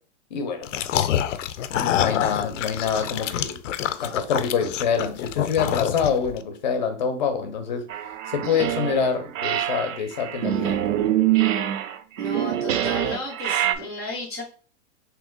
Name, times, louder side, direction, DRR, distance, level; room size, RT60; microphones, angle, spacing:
voice 1, 0.3-0.9 1.7-3.6 4.0-7.9 8.3-10.8 11.0-11.1, left 6 dB, 35° left, 0.7 m, -26 dB
sound 1, 0.6-6.4, left 11 dB, 75° left, 0.5 m, -27 dB
voice 2, 1.9-2.3 12.2-14.4, left 1 dB, 15° right, 0.4 m, -34 dB
sound 2, 7.9-9.1 9.3-13.7, right 12 dB, 85° right, 0.6 m, -24 dB
3.5 x 2.9 x 3.7 m
hypercardioid pair, 170°, 37 cm